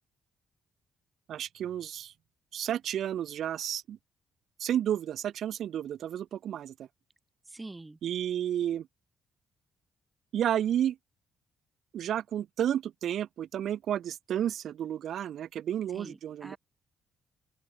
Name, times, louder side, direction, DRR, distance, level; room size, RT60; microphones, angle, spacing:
voice 1, 1.3-2.1 2.5-4.0 4.6-6.9 8.0-8.9 10.3-11.0 11.9-16.6, right 10 dB, 70° right, 0.8 m, -31 dB
voice 2, 7.5-8.0 15.9-16.6, right 2 dB, 15° right, 1.3 m, -45 dB
open air
cardioid pair, 90°, 0 cm